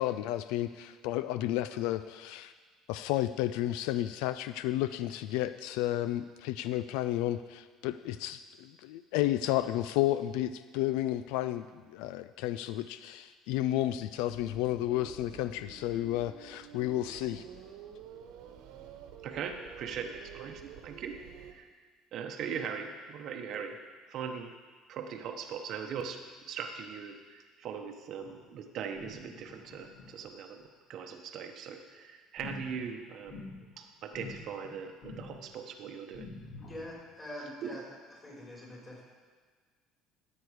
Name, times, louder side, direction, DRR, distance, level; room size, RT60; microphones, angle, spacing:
voice 1, 0.0-2.5 2.9-17.4, left 14 dB, 80° left, 13 dB, 0.3 m, -32 dB
sound 1, 13.9-21.5, right 8 dB, 70° right, 1.2 m, -50 dB
voice 2, 19.2-21.1 21.4-21.7 22.1-23.8 24.1-24.5 24.9-36.3 37.6-37.8, right 7 dB, 50° right, 5 dB, 0.9 m, -40 dB
sound 2, 28.2-28.6 28.9-30.7 32.4-33.8 34.1-34.7 35.0-35.7 36.1-37.0, left 3 dB, 55° left, 2.4 m, -47 dB
voice 3, 36.7-37.8 38.2-39.0, left 1 dB, 20° left, -4 dB, 4.2 m, -44 dB
14.5 x 8.0 x 4.8 m, 1.5 s
cardioid pair, 140°, 0 cm